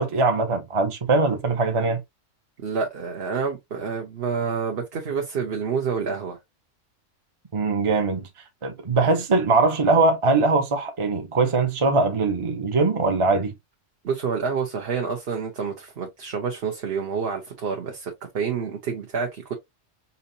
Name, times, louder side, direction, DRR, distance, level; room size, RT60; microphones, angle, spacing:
voice 1, 0.0-2.0 7.5-8.3 8.6-13.5, right 3 dB, 25° right, 0.8 m, -21 dB
voice 2, 2.6-6.4 14.0-19.5, right 6 dB, 50° right, 1.1 m, -28 dB
5.6 x 2.7 x 2.7 m
omnidirectional pair, 1.3 m